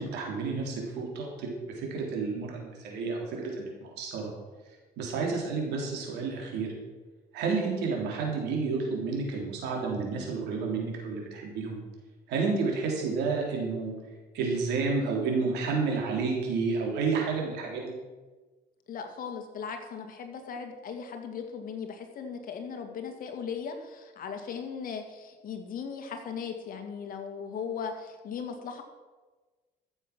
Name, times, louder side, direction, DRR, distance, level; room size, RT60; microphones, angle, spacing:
voice 1, 0.0-4.3 5.0-6.7 7.3-11.8 12.3-13.9 14.3-17.9, right 4 dB, 85° right, 0 dB, 3.8 m, -30 dB
voice 2, 18.9-28.8, left 6 dB, 55° left, 5 dB, 2.1 m, -38 dB
14.0 x 7.4 x 6.2 m, 1.3 s
cardioid pair, 110°, 17 cm